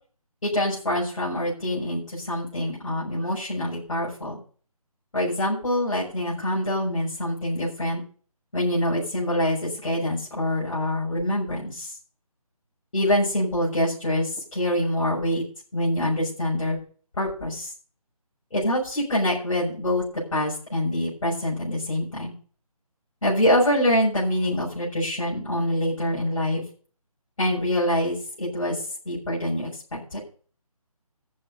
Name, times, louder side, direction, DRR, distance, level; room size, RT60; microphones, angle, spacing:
voice 1, 0.4-4.4 5.1-8.0 8.5-11.9 12.9-15.4 15.7-16.8 17.2-17.7 18.5-20.0 20.3-22.3 23.2-26.6 27.4-28.8 29.0-30.2, left 1 dB, 60° left, -7 dB, 6.6 m, -25 dB
14.0 x 5.3 x 7.9 m, 0.43 s
figure-of-eight pair, 155°, 19 cm